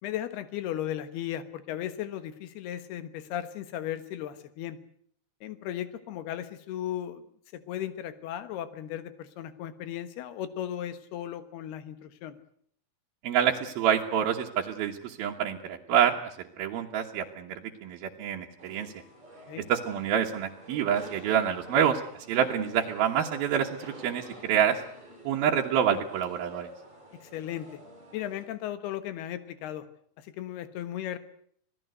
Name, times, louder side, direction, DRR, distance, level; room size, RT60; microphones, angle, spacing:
voice 1, 0.0-4.8 5.4-7.2 7.5-12.4 19.5-19.7 27.2-27.7 28.1-29.9 30.2-31.2, left 11 dB, 85° left, 12 dB, 3.4 m, -36 dB
voice 2, 13.2-16.2 16.6-18.9 19.7-22.0 22.3-24.8 25.2-26.7, right 9 dB, 75° right, -1 dB, 3.1 m, -27 dB
sound 1, 18.6-28.4, right 1 dB, 20° right, 7.7 m, -49 dB
26.5 x 17.5 x 8.0 m, 0.65 s
omnidirectional pair, 4.5 m